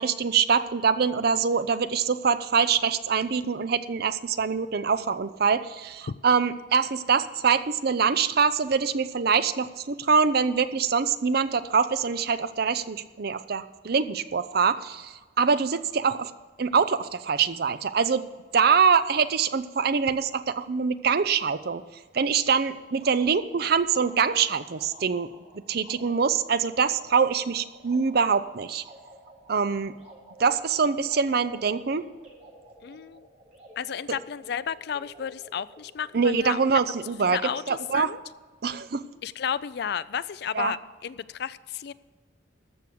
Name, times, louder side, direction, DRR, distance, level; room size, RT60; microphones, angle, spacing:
voice 1, 0.0-16.3 16.6-18.2 18.5-21.8 22.1-25.3 25.7-28.8 29.5-30.0 30.4-32.1 36.1-37.4 37.7-38.1 38.6-39.0 40.5-40.8, right 5 dB, 55° right, 13 dB, 0.6 m, -24 dB
sound 1, 22.9-38.1, right 1 dB, 35° right, 3.8 m, -52 dB
voice 2, 32.8-33.3 33.8-36.6 37.2-38.2 39.2-41.9, left 7 dB, 55° left, 17 dB, 0.4 m, -32 dB
14.0 x 6.4 x 6.8 m, 1.3 s
head